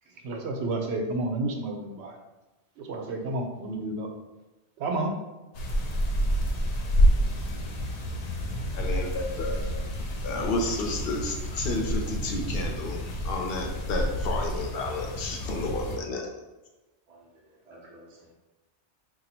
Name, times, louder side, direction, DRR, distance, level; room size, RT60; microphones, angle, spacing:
voice 1, 0.2-2.2 2.8-4.1 4.8-5.1 9.8-9.9, right 2 dB, 85° right, 3 dB, 0.9 m, -31 dB
sound 1, 5.5-16.0, equal, 90° left, 0.9 m, -28 dB
voice 2, 8.7-9.6 10.2-13.0 13.2-16.3, left 2 dB, 65° left, 1 dB, 0.8 m, -31 dB
voice 3, 17.1-18.3, right 1 dB, 40° right, -3 dB, 0.8 m, -53 dB
2.7 x 2.3 x 4.1 m, 1.1 s
omnidirectional pair, 1.1 m